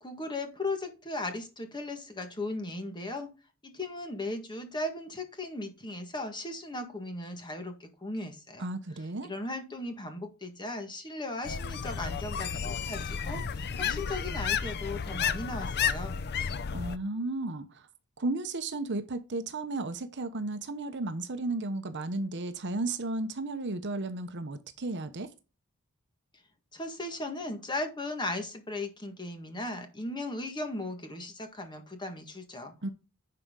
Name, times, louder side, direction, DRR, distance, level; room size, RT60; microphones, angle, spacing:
voice 1, 0.0-3.3 3.6-8.7 9.2-16.2 26.7-32.7, left 2 dB, 20° left, 1.7 m, -37 dB
voice 2, 8.6-9.3 16.7-17.9 18.2-25.3 32.8-32.9, right 2 dB, 55° right, 0.9 m, -34 dB
sound 1, 11.4-17.0, left 7 dB, 50° left, 0.5 m, -32 dB
10.5 x 4.7 x 3.8 m
head